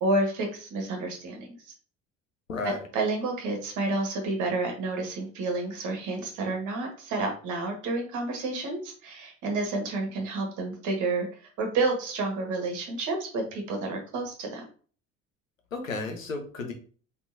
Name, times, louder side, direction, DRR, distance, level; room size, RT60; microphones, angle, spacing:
voice 1, 0.0-1.7 2.6-14.6, right 2 dB, 50° right, 3 dB, 1.4 m, -30 dB
voice 2, 2.5-2.9 15.7-16.7, left 3 dB, 80° left, 4 dB, 0.8 m, -33 dB
3.9 x 3.8 x 2.6 m, 0.41 s
figure-of-eight pair, 55°, 39 cm